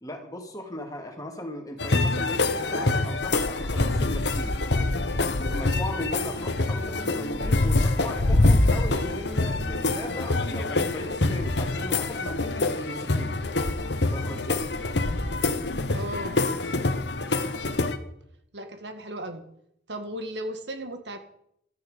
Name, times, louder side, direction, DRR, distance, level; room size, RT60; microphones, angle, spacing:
voice 1, 0.0-4.5 5.3-13.3 14.1-14.6, left 1 dB, 20° left, 3 dB, 2.5 m, -37 dB
sound 1, 1.8-18.0, left 2 dB, 65° left, 1.2 m, -25 dB
voice 2, 15.9-16.4 18.5-19.4 19.9-21.2, right 1 dB, 65° right, 7 dB, 1.9 m, -35 dB
15.0 x 13.5 x 5.1 m, 0.72 s
head